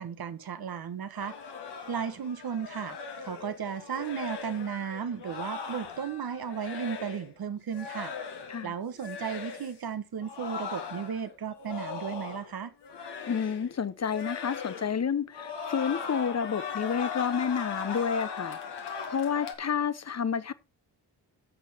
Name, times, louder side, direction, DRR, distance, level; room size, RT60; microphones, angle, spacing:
voice 1, 0.0-1.3 1.9-8.1 8.6-12.7, right 7 dB, 60° right, 1.2 m, -35 dB
sound 1, 1.2-7.3 7.7-8.7 9.0-9.8 10.2-12.6 12.8-13.8 14.1-15.0 15.3-19.6, left 6 dB, 80° left, 1.7 m, -39 dB
voice 2, 13.3-18.6 19.1-20.5, left 7 dB, 40° left, 0.9 m, -30 dB
10.5 x 6.4 x 4.3 m
supercardioid pair, 45°, 41 cm